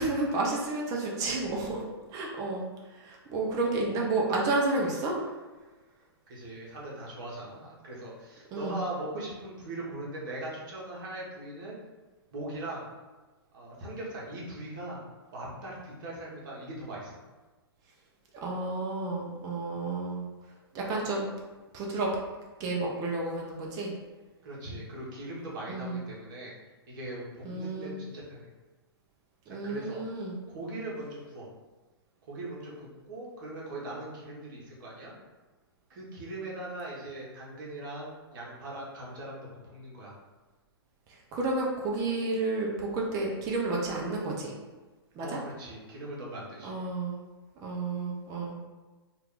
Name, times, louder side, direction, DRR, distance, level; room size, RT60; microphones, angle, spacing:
voice 1, 0.0-1.8 2.1-5.3 8.5-8.8 18.4-20.2 20.7-21.3 21.7-22.1 22.6-23.9 25.7-26.0 27.4-28.0 29.5-30.4 41.1-44.5 45.1-45.4 46.6-47.2 47.6-48.5, right 2 dB, 25° right, -2 dB, 0.7 m, -31 dB
voice 2, 6.3-11.8 12.3-12.9 13.5-15.0 15.3-17.2 24.4-26.6 26.9-28.5 29.5-30.0 30.5-31.5 32.3-35.1 35.9-40.1 45.2-46.7, right 1 dB, 50° right, -5 dB, 1.2 m, -40 dB
2.8 x 2.5 x 3.6 m, 1.2 s
figure-of-eight pair, 115°, 13 cm